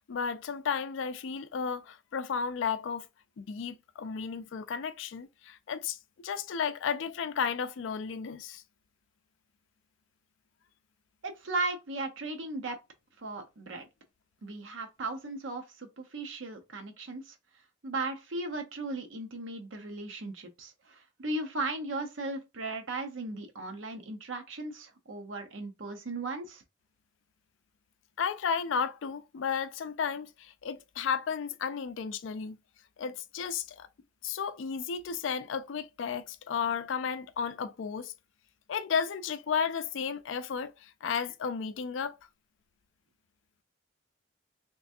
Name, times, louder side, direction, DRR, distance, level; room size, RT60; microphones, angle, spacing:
voice 1, 0.1-3.1 3.4-6.0 6.2-8.6 28.2-32.6 33.0-33.9 34.2-38.1 38.7-42.2, left 6 dB, 75° left, 0.4 m, -33 dB
voice 2, 11.2-12.8 13.2-13.8 14.4-17.3 17.8-26.6, right 2 dB, 80° right, 0.8 m, -37 dB
3.3 x 3.0 x 2.6 m
head